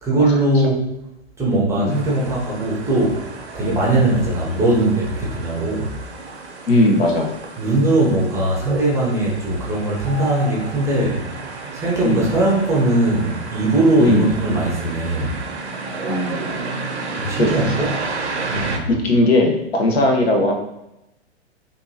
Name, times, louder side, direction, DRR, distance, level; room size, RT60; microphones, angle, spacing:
voice 1, 0.0-0.9 1.4-3.3 3.5-5.9 7.6-11.3 11.7-15.4 17.2-17.9 18.5-18.9, right 2 dB, 10° right, -4 dB, 0.6 m, -20 dB
sound 1, 1.9-18.8, right 3 dB, 80° right, 0.8 m, -32 dB
voice 2, 6.7-7.3 12.0-12.3 14.0-14.3 16.1-16.4 17.4-17.5 18.9-20.5, left 1 dB, 65° left, 1 dB, 0.9 m, -17 dB
3.6 x 2.6 x 2.7 m, 0.89 s
figure-of-eight pair, 110°, 33 cm